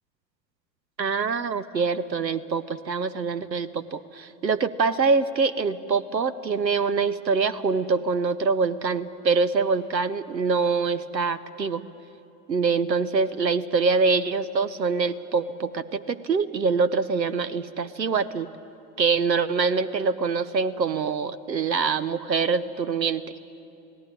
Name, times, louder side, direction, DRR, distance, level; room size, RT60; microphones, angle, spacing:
voice 1, 1.0-11.8 12.5-18.5 19.0-23.2, right 4 dB, 85° right, 17 dB, 0.8 m, -24 dB
28.5 x 18.0 x 9.0 m, 2.8 s
figure-of-eight pair, 80°, 49 cm